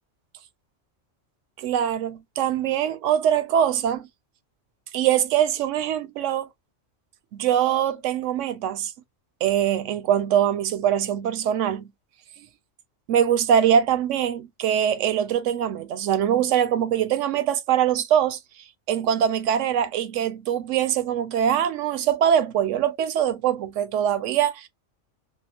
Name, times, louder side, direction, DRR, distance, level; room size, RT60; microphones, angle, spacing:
voice 1, 1.6-4.1 4.9-6.5 7.3-8.9 9.4-11.9 13.1-18.4 18.9-24.7, right 9 dB, 80° right, 0.9 m, -23 dB
3.7 x 2.0 x 2.8 m
omnidirectional pair, 1.3 m